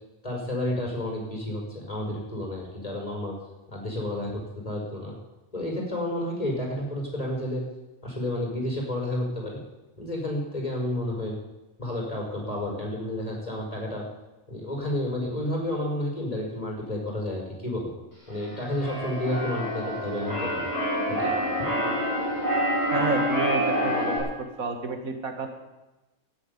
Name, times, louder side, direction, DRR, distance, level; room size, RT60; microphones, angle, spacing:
voice 1, 0.2-3.3 3.7-5.1 5.5-7.6 8.0-9.6 10.0-11.3 11.8-14.1 14.5-17.9 18.3-20.7 21.1-21.3, left 1 dB, 25° left, -1 dB, 5.3 m, -31 dB
Keyboard (musical), 18.3-24.2, equal, 15° right, 6.5 m, -27 dB
voice 2, 22.9-25.5, right 4 dB, 80° right, 5 dB, 2.1 m, -31 dB
13.0 x 9.8 x 9.7 m, 1.0 s
omnidirectional pair, 1.4 m